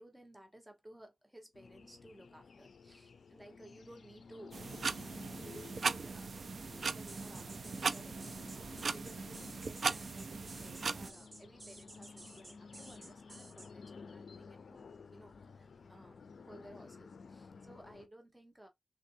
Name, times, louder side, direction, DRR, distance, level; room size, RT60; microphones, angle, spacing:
voice 1, 0.0-4.6 5.4-18.7, right 1 dB, 5° right, 0.9 m, -57 dB
sound 1, 1.5-18.1, left 5 dB, 80° left, 0.4 m, -54 dB
sound 2, 4.5-11.1, right 4 dB, 65° right, 0.3 m, -38 dB
sound 3, 7.1-13.7, right 2 dB, 45° right, 1.0 m, -54 dB
3.5 x 2.6 x 2.6 m
wide cardioid pair, 105°, 0 cm